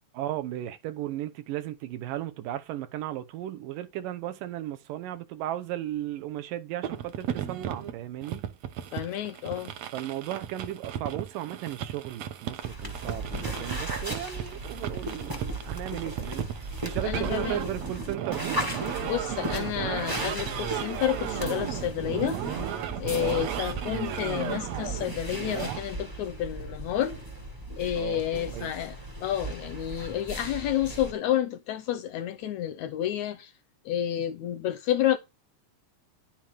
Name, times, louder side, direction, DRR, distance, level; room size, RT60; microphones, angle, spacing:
voice 1, 0.1-8.4 9.9-18.6 23.1-23.5 28.0-28.7, right 13 dB, 85° right, 2.6 m, -35 dB
sound 1, 6.8-25.8, right 10 dB, 65° right, 1.8 m, -35 dB
voice 2, 8.9-9.7 17.0-17.6 19.0-22.4 23.0-27.2 27.8-29.0 29.2-33.5 33.9-35.2, left 11 dB, 80° left, 1.7 m, -30 dB
sound 2, 12.6-31.1, right 1 dB, 15° right, 0.7 m, -37 dB
10.5 x 7.8 x 3.5 m
omnidirectional pair, 3.8 m